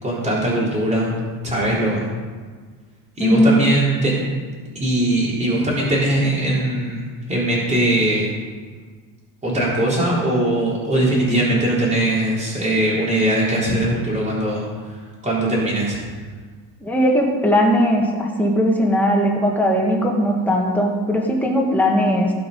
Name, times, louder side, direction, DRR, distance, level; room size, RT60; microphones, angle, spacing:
voice 1, 0.0-1.2 1.4-2.1 3.2-4.2 4.7-8.3 9.4-16.0, right 1 dB, 15° right, -6 dB, 4.0 m, -20 dB
voice 2, 3.2-3.6 16.8-22.3, equal, 5° left, -1 dB, 1.8 m, -18 dB
16.5 x 6.0 x 5.4 m, 1.5 s
cardioid pair, 150°, 41 cm